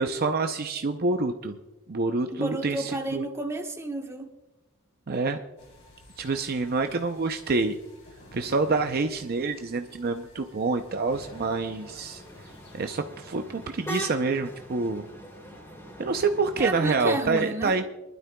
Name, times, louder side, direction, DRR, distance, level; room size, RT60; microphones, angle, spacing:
voice 1, 0.0-1.6 1.9-3.2 5.1-5.4 6.2-7.8 8.3-12.2 12.7-15.1 16.0-17.8, right 3 dB, 45° right, 0.6 m, -27 dB
voice 2, 2.3-4.3 16.6-17.7, right 2 dB, 15° right, 1.2 m, -31 dB
sound 1, 5.6-13.0, left 1 dB, 55° left, 3.5 m, -52 dB
sound 2, 11.0-16.9, right 1 dB, 15° left, 2.9 m, -41 dB
23.5 x 12.0 x 2.3 m
head